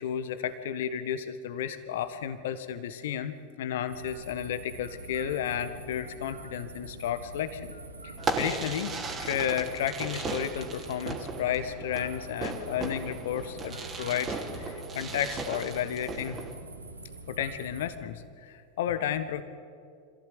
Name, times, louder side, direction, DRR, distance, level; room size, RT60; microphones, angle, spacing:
voice 1, 0.0-7.7 8.0-16.4 17.3-19.4, left 9 dB, 55° left, 12 dB, 1.5 m, -32 dB
sound 1, 3.8-17.9, right 2 dB, 80° right, 2.2 m, -45 dB
Fireworks, 8.2-16.5, right 4 dB, 20° right, 2.8 m, -36 dB
26.0 x 15.5 x 9.5 m, 2.2 s
figure-of-eight pair, 90°, 0 cm